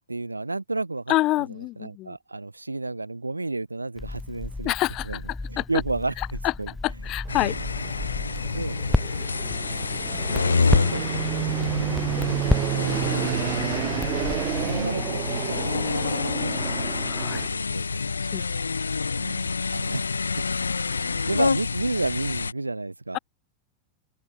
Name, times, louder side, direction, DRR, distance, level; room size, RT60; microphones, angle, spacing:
voice 1, 0.1-1.1 1.5-4.7 5.1-5.2 5.5-6.1 6.6-6.7 7.4-7.6 8.5-8.8 9.9-10.0 10.3-11.5 12.1-12.2 13.2-13.5 14.6-16.6 17.2-18.1 19.2-20.2 20.9-23.2, right 2 dB, 80° right, 5.3 m, -32 dB
voice 2, 1.1-2.2 4.6-5.2 5.6-5.7 6.4-6.5 6.8-7.5 17.1-17.4 18.3-18.4, left 18 dB, 40° left, 3.5 m, -26 dB
Crackle, 4.0-14.8, left 2 dB, 5° left, 2.5 m, -32 dB
sound 1, 7.3-22.5, left 4 dB, 75° left, 1.8 m, -28 dB
Fixed-wing aircraft airplane, 7.3-17.5, right 19 dB, 40° right, 2.2 m, -31 dB
open air
figure-of-eight pair, 90°, 0 cm